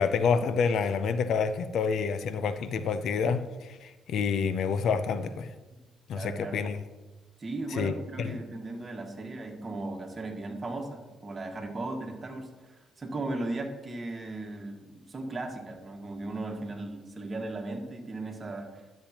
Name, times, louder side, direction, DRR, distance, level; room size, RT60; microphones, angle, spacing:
voice 1, 0.0-5.5 6.1-6.8 7.7-8.4, left 6 dB, 70° left, 0.5 m, -28 dB
voice 2, 6.1-6.6 7.4-14.8 15.1-18.8, right 2 dB, 35° right, 1.6 m, -37 dB
11.5 x 7.0 x 2.9 m
cardioid pair, 90°, 0 cm